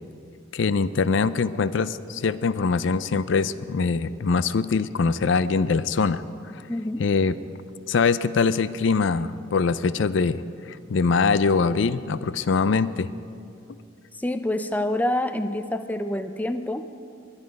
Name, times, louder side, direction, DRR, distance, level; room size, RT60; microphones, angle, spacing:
voice 1, 0.5-6.2 7.0-7.4 7.9-10.4 10.7-13.1, left 4 dB, 70° left, 15 dB, 0.4 m, -23 dB
voice 2, 6.7-7.0 14.2-16.9, left 1 dB, 10° left, 9 dB, 0.4 m, -27 dB
21.0 x 11.5 x 5.2 m, 2.5 s
head